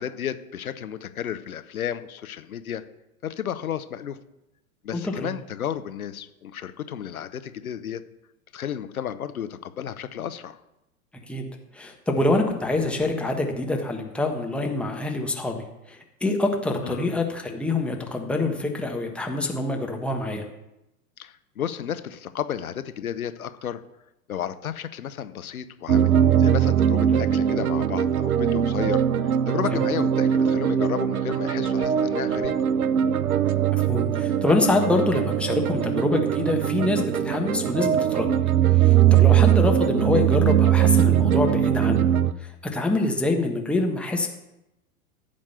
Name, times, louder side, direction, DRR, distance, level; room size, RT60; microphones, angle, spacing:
voice 1, 0.0-2.8 3.2-4.2 4.8-8.0 8.5-10.6 16.8-17.2 21.2-23.8 24.3-32.6, left 9 dB, 75° left, 12 dB, 0.8 m, -32 dB
voice 2, 4.9-5.3 11.3-11.5 11.7-20.4 27.1-27.2 29.7-29.8 33.9-38.3 38.7-42.1 42.4-44.3, left 2 dB, 5° left, 2 dB, 1.3 m, -25 dB
sound 1, 25.9-42.3, right 10 dB, 75° right, 0.7 m, -21 dB
14.0 x 5.3 x 6.8 m, 0.92 s
figure-of-eight pair, 95°, 43 cm